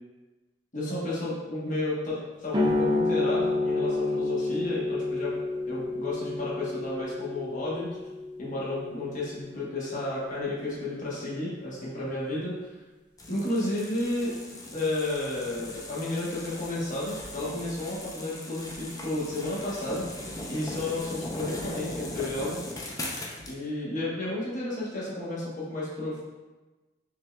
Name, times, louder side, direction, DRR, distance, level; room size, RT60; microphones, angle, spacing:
voice 1, 0.7-5.3 5.7-7.9 8.4-12.5 13.3-14.3 14.7-20.0 20.5-22.6 23.5-26.2, left 2 dB, 45° left, -6 dB, 1.1 m, -32 dB
sound 1, 2.5-9.7, left 2 dB, 25° right, 0.6 m, -29 dB
sound 2, 13.2-23.6, left 1 dB, 20° left, 0.5 m, -39 dB
5.4 x 3.1 x 2.3 m, 1.2 s
head